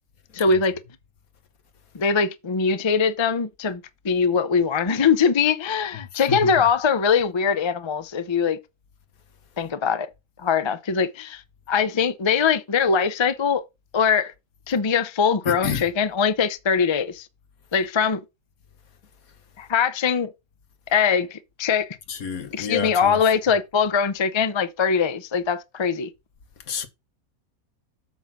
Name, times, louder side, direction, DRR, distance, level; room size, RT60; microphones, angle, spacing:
voice 1, 0.3-0.8 1.9-8.6 9.6-10.1 10.4-11.4 11.7-13.6 13.9-14.3 14.7-17.3 17.7-18.2 19.6-20.3 20.9-22.0 22.5-26.1, left 6 dB, 35° left, 0.4 m, -22 dB
voice 2, 6.3-6.7 15.4-15.9 22.1-23.2 26.7-26.9, left 7 dB, 75° left, 1.6 m, -29 dB
8.2 x 4.1 x 6.0 m
omnidirectional pair, 1.5 m